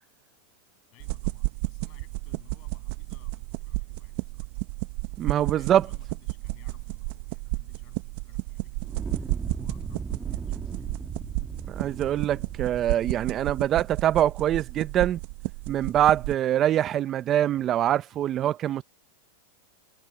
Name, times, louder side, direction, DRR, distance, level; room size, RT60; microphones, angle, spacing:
voice 1, 0.9-4.5 5.5-10.9, left 26 dB, 45° left, 7.6 m, -58 dB
sound 1, 1.0-16.4, right 23 dB, 55° right, 1.2 m, -33 dB
voice 2, 5.2-5.8 11.7-15.2 15.7-18.8, right 11 dB, 30° right, 0.6 m, -24 dB
Fire, 8.8-14.0, right 4 dB, 15° right, 1.5 m, -38 dB
supercardioid pair, 145°, 0 cm